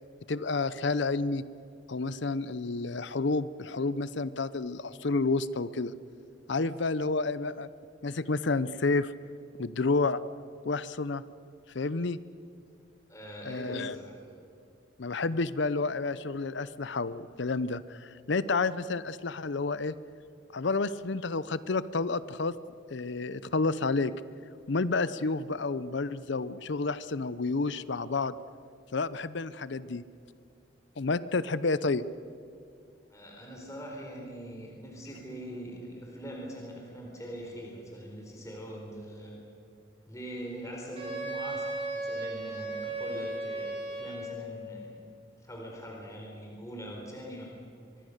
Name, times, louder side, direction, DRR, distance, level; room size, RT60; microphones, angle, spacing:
voice 1, 0.3-1.4 1.9-5.9 6.5-7.7 8.0-9.1 9.6-10.2 10.6-11.2 11.7-12.2 13.4-14.0 15.0-19.9 20.5-22.5 22.9-24.1 24.7-28.4 28.9-30.0 31.0-32.0, left 3 dB, 65° left, 16 dB, 0.6 m, -30 dB
voice 2, 13.1-14.2 33.1-39.3 40.1-45.0 45.4-47.5, equal, 15° left, -1 dB, 4.1 m, -42 dB
Wind instrument woodwind instrument, 41.0-44.5, right 2 dB, 30° right, 6.7 m, -35 dB
24.5 x 22.5 x 6.7 m, 2.3 s
head